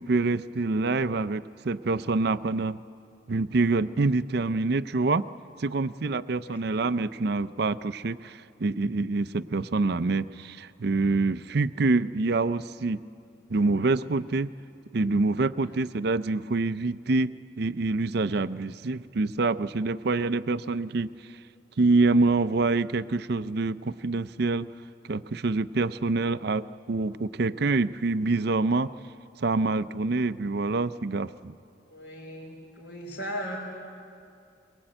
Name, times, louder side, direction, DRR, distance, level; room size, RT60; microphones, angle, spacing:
voice 1, 0.0-2.8 3.3-5.3 5.6-13.0 13.5-14.5 14.9-17.3 17.6-21.1 21.8-24.7 25.1-28.9 29.4-31.6, right 3 dB, 55° right, 15 dB, 0.5 m, -26 dB
voice 2, 31.9-33.6, equal, 70° left, -6 dB, 4.1 m, -38 dB
22.5 x 21.5 x 8.9 m, 2.4 s
head